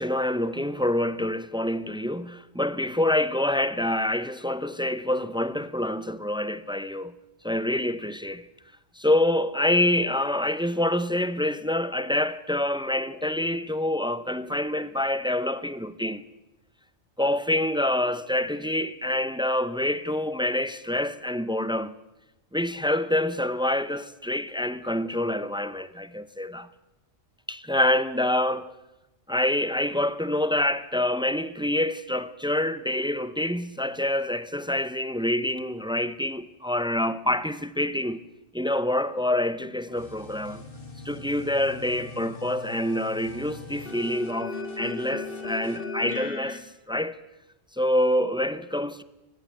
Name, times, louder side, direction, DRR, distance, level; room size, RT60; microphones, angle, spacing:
voice 1, 0.0-7.1 7.4-8.4 9.0-16.2 17.2-21.9 22.5-26.7 27.5-28.7 29.3-38.2 38.5-40.6 41.0-47.2 47.8-49.0, left 1 dB, 5° right, 0.6 m, -26 dB
sound 1, 39.9-46.6, left 3 dB, 45° left, 2.2 m, -38 dB
23.5 x 20.0 x 8.3 m
omnidirectional pair, 1.4 m